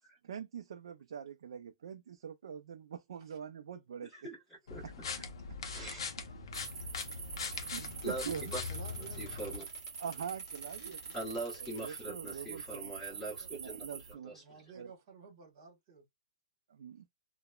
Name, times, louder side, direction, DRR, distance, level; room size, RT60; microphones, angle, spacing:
voice 1, 0.2-4.1 7.3-7.4 7.7-8.5 10.0-11.1 11.6-12.9 13.6-14.4 14.8-14.9 16.7-17.1, right 8 dB, 55° right, 0.4 m, -44 dB
sound 1, 4.7-9.6, left 5 dB, 55° left, 0.6 m, -41 dB
voice 2, 4.7-5.1 5.6-6.1 8.0-8.2 8.5-8.6 9.2-9.7 11.1-13.9 14.2-14.4, right 2 dB, 5° left, 1.0 m, -42 dB
sound 2, 6.5-14.1, right 6 dB, 90° right, 0.7 m, -45 dB
Squeak, 7.3-12.4, left 3 dB, 35° left, 0.9 m, -58 dB
voice 3, 8.2-9.3 12.3-12.5 13.0-13.5 14.3-16.0, right 6 dB, 30° right, 1.2 m, -52 dB
2.9 x 2.0 x 2.2 m
hypercardioid pair, 175°, 3 cm